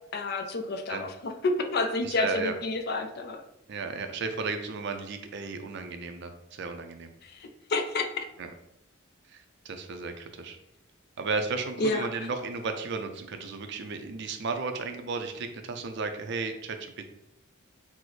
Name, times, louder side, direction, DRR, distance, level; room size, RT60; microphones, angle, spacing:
voice 1, 0.1-3.4 7.4-8.3 11.8-12.0, left 3 dB, 50° left, 6 dB, 0.4 m, -29 dB
voice 2, 2.0-2.5 3.7-7.1 8.4-8.5 9.3-9.4 9.6-10.6 11.2-17.1, right 4 dB, 55° right, 7 dB, 0.4 m, -34 dB
6.1 x 2.1 x 3.1 m, 0.82 s
head